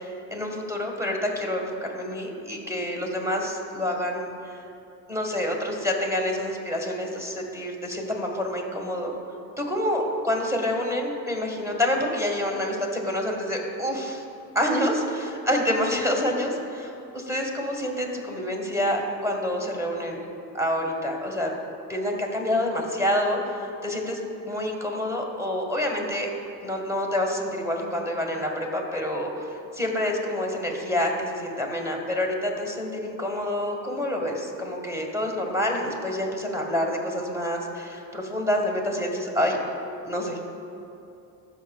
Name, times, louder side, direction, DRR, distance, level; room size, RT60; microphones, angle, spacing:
voice 1, 0.3-4.6 5.1-9.1 9.6-14.2 14.5-20.2 20.5-21.5 21.9-24.2 24.5-26.3 26.6-29.3 29.8-39.6 40.0-40.4, left 1 dB, 5° right, 0 dB, 1.6 m, -27 dB
13.5 x 5.5 x 2.4 m, 2.7 s
hypercardioid pair, 65°, 43 cm